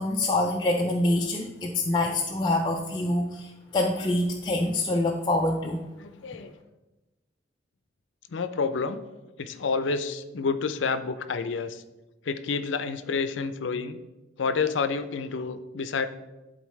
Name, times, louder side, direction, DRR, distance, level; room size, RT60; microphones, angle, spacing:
voice 1, 0.0-5.8, left 2 dB, 25° left, 0 dB, 0.5 m, -26 dB
voice 2, 6.0-6.5 8.3-9.0 9.4-11.8 12.2-14.0 14.4-16.1, left 4 dB, 90° left, 11 dB, 0.5 m, -29 dB
11.5 x 4.1 x 3.2 m, 1.1 s
head